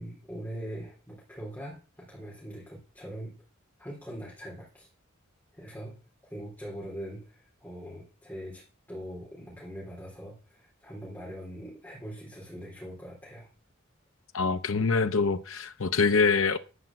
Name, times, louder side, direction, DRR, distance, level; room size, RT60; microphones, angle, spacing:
voice 1, 0.0-3.3 3.8-4.9 5.5-5.9 6.2-8.6 8.9-13.5, equal, 10° left, 4.0 m, -42 dB
voice 2, 14.3-16.6, left 4 dB, 70° left, 0.7 m, -25 dB
11.5 x 5.9 x 7.5 m
head